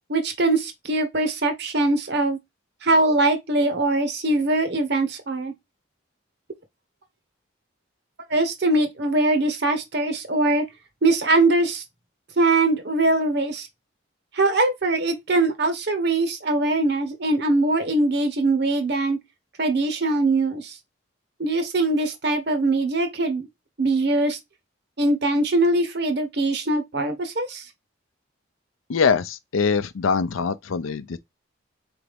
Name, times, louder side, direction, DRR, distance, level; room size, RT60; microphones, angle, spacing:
voice 1, 0.1-2.4 2.8-5.5 8.3-10.6 11.0-11.8 12.4-13.7 14.3-19.2 19.6-20.7 21.4-23.5 23.8-24.4 25.0-27.6, right 2 dB, 55° right, 1.1 m, -22 dB
voice 2, 28.9-31.2, left 5 dB, 80° left, 0.5 m, -23 dB
4.0 x 3.5 x 3.4 m
head